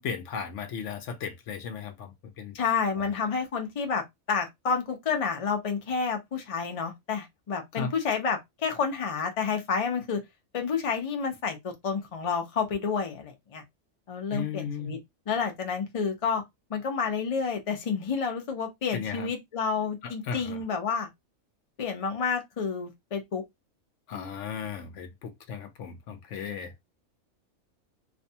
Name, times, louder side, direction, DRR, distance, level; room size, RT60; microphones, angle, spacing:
voice 1, 0.0-2.6 3.0-3.1 7.7-7.9 14.3-14.9 18.9-19.3 20.0-20.6 24.1-26.8, left 6 dB, 70° left, 0.8 m, -36 dB
voice 2, 2.5-10.2 10.5-13.6 14.1-15.0 15.3-16.4 16.7-21.1 21.8-23.4, left 5 dB, 50° left, 0.4 m, -30 dB
2.6 x 2.2 x 2.7 m
omnidirectional pair, 1.4 m